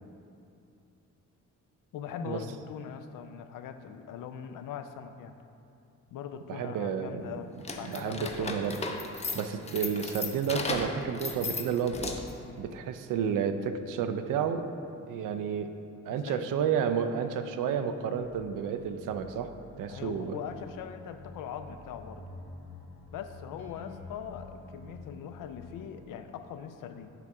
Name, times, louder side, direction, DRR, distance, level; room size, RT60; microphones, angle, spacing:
voice 1, 1.9-5.3 6.1-8.6 16.1-16.5 19.9-22.3 23.1-27.1, left 8 dB, 90° left, 9 dB, 0.5 m, -41 dB
voice 2, 6.5-7.3 7.8-8.8 9.3-12.1 12.6-14.6 15.1-15.7 16.1-19.5 19.8-20.4, right 7 dB, 90° right, 9 dB, 0.5 m, -31 dB
sound 1, 7.6-12.4, left 3 dB, 20° left, 0.5 m, -36 dB
sound 2, 18.2-25.9, left 2 dB, 70° left, 1.1 m, -48 dB
7.8 x 3.5 x 4.8 m, 2.6 s
cardioid pair, 120°, 31 cm